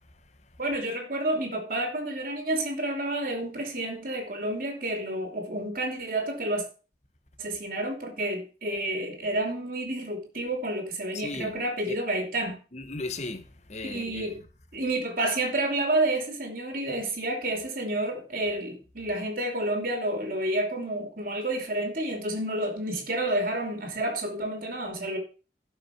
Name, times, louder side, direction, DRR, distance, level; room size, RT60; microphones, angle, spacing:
voice 1, 0.6-6.6 7.4-12.6 13.8-14.4 14.7-25.2, right 1 dB, 50° right, 2.9 m, -30 dB
voice 2, 11.1-11.5 11.9-12.0 12.7-14.4, left 2 dB, 40° left, 1.1 m, -36 dB
12.0 x 5.6 x 5.9 m
head